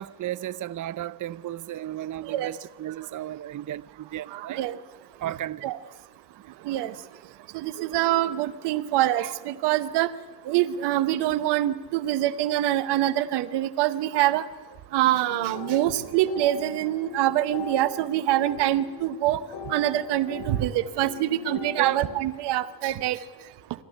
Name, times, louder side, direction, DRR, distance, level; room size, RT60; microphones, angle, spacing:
voice 1, 0.0-4.6 5.2-5.7 6.4-6.5 21.8-22.0, right 12 dB, 50° right, 0.6 m, -34 dB
voice 2, 4.3-4.8 5.6-5.8 6.6-6.9 7.5-10.1 10.5-14.4 14.9-19.4 19.7-23.2, right 14 dB, 80° right, 0.9 m, -25 dB
sound 1, 15.3-22.2, left 4 dB, 75° left, 2.5 m, -40 dB
26.5 x 13.5 x 9.9 m
hypercardioid pair, 45°, 40 cm